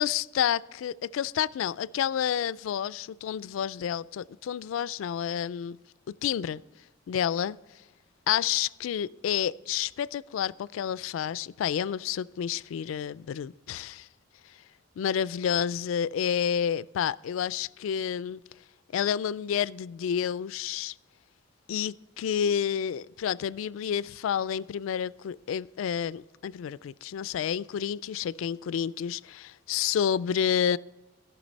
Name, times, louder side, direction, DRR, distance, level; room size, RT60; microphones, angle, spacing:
voice 1, 0.0-5.8 6.1-6.6 7.1-7.6 8.3-14.1 15.0-18.4 18.9-20.9 21.7-30.8, left 8 dB, 85° left, 0.3 m, -29 dB
17.0 x 5.8 x 4.0 m
head